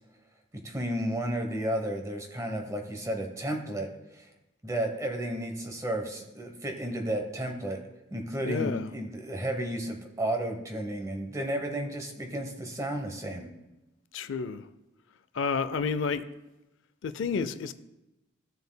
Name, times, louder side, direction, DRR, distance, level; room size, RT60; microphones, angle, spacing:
voice 1, 0.6-3.9 4.1-4.3 4.6-7.8 8.1-13.5, right 1 dB, 15° right, 0.9 m, -32 dB
voice 2, 8.4-8.9 14.1-14.7 15.3-16.2 17.0-17.7, left 5 dB, 75° left, 0.4 m, -30 dB
14.5 x 6.6 x 2.2 m
head